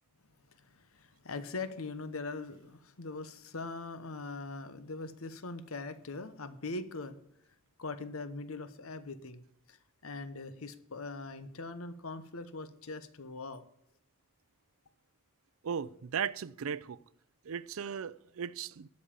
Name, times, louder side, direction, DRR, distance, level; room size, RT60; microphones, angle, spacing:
voice 1, 0.5-7.2 7.8-9.4 9.7-9.8 10.0-13.6, left 3 dB, 75° left, 1.0 m, -41 dB
voice 2, 15.6-17.0 17.4-18.9, right 7 dB, 75° right, 0.5 m, -37 dB
12.5 x 5.4 x 8.5 m
head